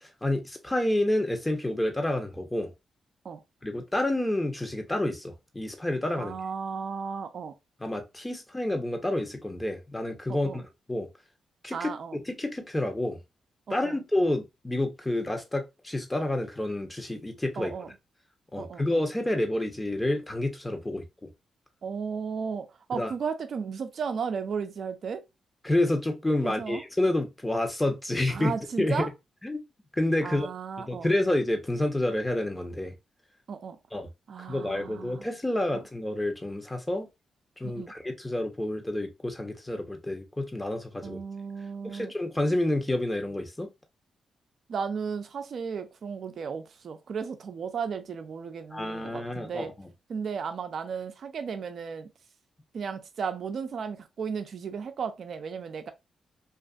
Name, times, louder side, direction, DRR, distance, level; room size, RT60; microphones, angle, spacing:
voice 1, 0.0-2.7 3.6-6.4 7.8-10.6 10.9-11.1 11.6-13.2 13.7-17.7 18.5-21.3 22.9-23.1 25.6-28.5 28.8-29.1 29.4-29.6 30.0-30.5 30.8-32.9 33.9-34.1 34.5-37.1 37.6-41.2 41.8-43.7 48.7-49.9, left 1 dB, 15° left, 0.8 m, -29 dB
voice 2, 6.2-7.5 10.3-10.6 11.7-12.2 13.7-14.0 17.6-17.9 18.6-18.8 21.8-25.2 26.4-26.8 28.3-29.1 30.2-31.1 33.5-33.8 34.3-35.3 35.7-35.8 37.6-37.9 41.0-42.1 44.7-49.7 50.1-52.1 52.7-55.9, right 6 dB, 65° right, 0.4 m, -35 dB
2.5 x 2.4 x 2.4 m
supercardioid pair, 55°, 0 cm